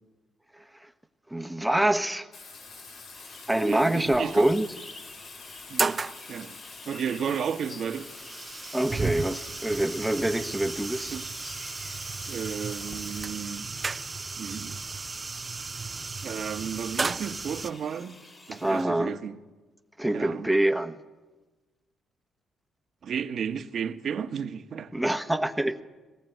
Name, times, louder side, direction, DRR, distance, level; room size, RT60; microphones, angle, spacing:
voice 1, 0.6-0.9 1.3-2.3 3.5-4.7 8.7-11.2 18.5-19.2 20.0-21.0 24.9-25.8, right 1 dB, 5° right, 1.1 m, -26 dB
Bathtub (filling or washing), 2.3-13.2, left 4 dB, 65° left, 4.4 m, -46 dB
sound 1, 2.7-3.0 4.2-4.3 4.8-4.9 5.4-6.2 7.3-17.7, right 4 dB, 30° right, 0.6 m, -34 dB
sound 2, 3.1-18.8, left 2 dB, 35° left, 3.4 m, -50 dB
voice 2, 3.7-4.5 5.7-6.0 6.3-6.6 6.9-8.1 11.1-11.2 12.3-13.7 14.4-14.8 16.2-18.2 18.5-19.4 20.1-20.5 23.0-24.9, right 7 dB, 60° right, 1.2 m, -33 dB
20.5 x 18.5 x 9.2 m
cardioid pair, 90°, 0 cm